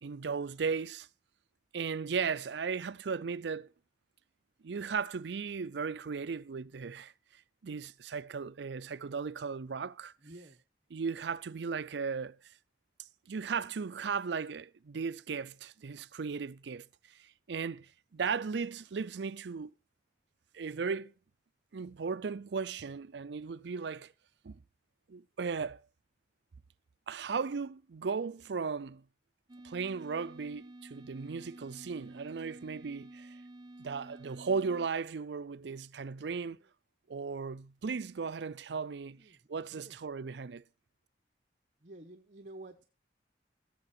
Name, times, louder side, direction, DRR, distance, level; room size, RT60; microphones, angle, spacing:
voice 1, 0.0-1.1 1.7-3.7 4.6-7.1 7.6-10.1 10.9-12.4 13.3-16.9 17.2-19.7 20.5-21.1 21.7-24.1 24.4-24.6 25.1-25.8 27.1-29.0 29.6-33.4 33.8-36.6 37.1-39.2 39.5-40.6, right 5 dB, 75° right, 0.5 m, -36 dB
voice 2, 10.2-10.6 36.6-36.7 39.2-39.4 39.7-40.0 41.8-42.8, right 2 dB, 45° right, 1.1 m, -50 dB
sound 1, 29.5-34.9, right 1 dB, 25° right, 0.6 m, -51 dB
16.0 x 7.6 x 4.3 m
head